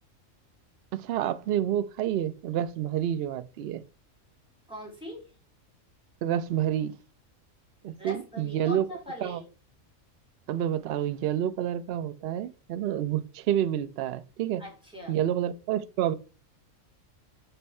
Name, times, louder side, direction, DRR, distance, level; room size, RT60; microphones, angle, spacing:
voice 1, 0.9-3.8 6.2-6.9 7.8-8.9 9.2-9.4 10.5-14.6 15.1-16.1, right 11 dB, 60° right, 0.7 m, -28 dB
voice 2, 4.7-5.2 8.0-9.5 14.6-15.2, equal, 5° right, 3.2 m, -41 dB
7.0 x 4.4 x 4.2 m
omnidirectional pair, 1.5 m